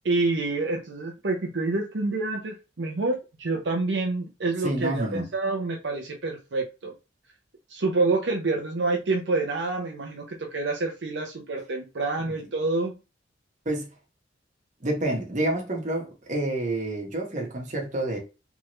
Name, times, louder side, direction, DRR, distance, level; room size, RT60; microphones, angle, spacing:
voice 1, 0.0-6.9 7.7-13.0, right 3 dB, 65° right, 0.7 m, -27 dB
voice 2, 4.6-5.3 12.2-12.3 13.6-13.9 14.8-18.2, right 1 dB, 40° right, 1.2 m, -28 dB
3.5 x 3.0 x 3.1 m
head